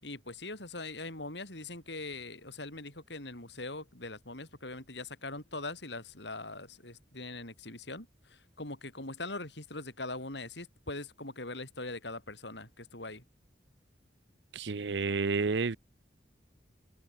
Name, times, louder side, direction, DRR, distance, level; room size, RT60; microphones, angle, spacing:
voice 1, 0.0-13.2, left 2 dB, 70° left, 7.6 m, -42 dB
voice 2, 14.5-15.8, right 4 dB, 70° right, 0.7 m, -30 dB
head